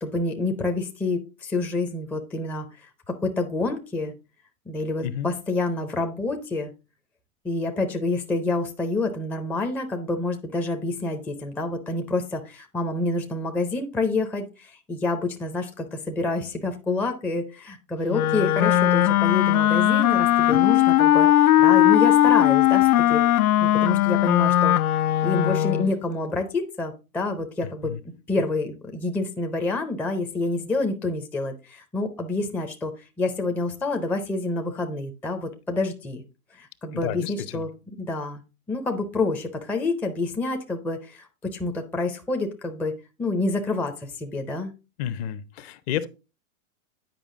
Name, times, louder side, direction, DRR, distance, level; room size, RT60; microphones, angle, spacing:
voice 1, 0.0-4.1 4.7-6.7 7.4-23.2 23.6-24.8 25.2-27.9 28.3-36.2 36.6-37.7 38.0-38.4 38.7-44.7, left 3 dB, 5° left, 0.5 m, -28 dB
Wind instrument woodwind instrument, 18.1-26.0, left 13 dB, 85° left, 0.6 m, -19 dB
voice 2, 36.9-37.7 45.0-46.1, left 10 dB, 45° left, 0.8 m, -31 dB
9.2 x 5.0 x 3.7 m
hypercardioid pair, 125°, 42 cm